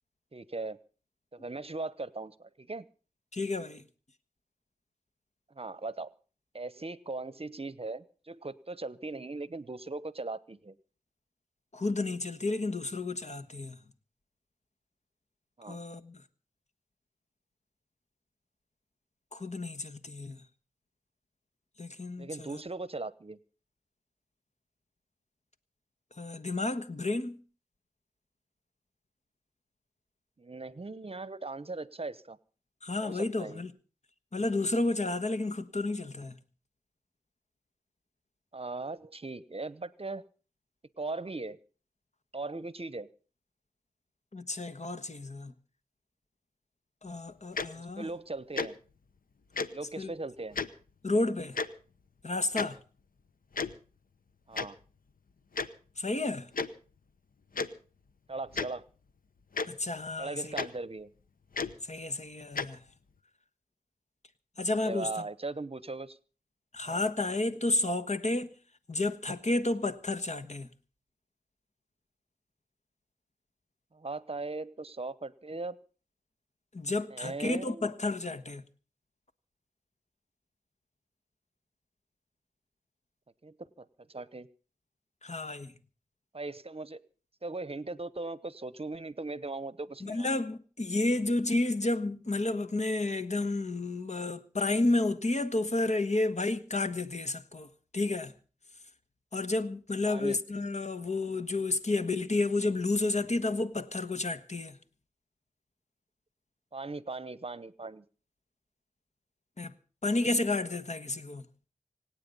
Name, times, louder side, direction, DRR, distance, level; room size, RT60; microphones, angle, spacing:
voice 1, 0.3-0.8 1.3-2.9 5.5-6.1 6.5-10.7 15.6-15.8 22.2-23.4 30.4-32.4 33.0-33.6 38.5-40.2 41.0-41.6 42.3-43.1 47.7-48.8 49.7-50.6 54.5-54.8 58.3-58.9 60.2-61.1 64.8-66.2 66.8-67.0 73.9-75.8 77.1-78.0 83.4-84.5 86.3-87.0 87.4-90.3 100.1-100.4 106.7-108.0, right 3 dB, 40° right, 0.8 m, -39 dB
voice 2, 3.3-3.8 11.7-13.8 15.7-16.2 19.3-20.4 21.8-22.6 26.2-27.4 32.8-33.7 34.3-36.4 44.3-45.5 47.0-48.1 50.0-50.1 51.0-51.6 52.2-52.8 56.0-56.5 59.7-60.5 61.8-62.8 64.6-65.3 66.7-68.6 68.9-70.7 76.7-78.6 85.2-85.7 90.0-98.3 99.3-104.8 109.6-109.7 110.0-111.5, left 2 dB, 55° left, 1.3 m, -31 dB
Tick-tock, 47.6-47.7 48.5-48.7 49.6-49.7 50.5-50.7 51.6-51.7 52.6-52.7 53.5-53.7 54.6-54.7 55.6-55.7 56.5-56.7 57.6-57.7 58.5-58.7 59.6-59.7 60.6-60.7 61.5-61.7 62.6-62.7, left 4 dB, 80° left, 1.0 m, -31 dB
26.0 x 8.8 x 5.4 m
cardioid pair, 45°, 14 cm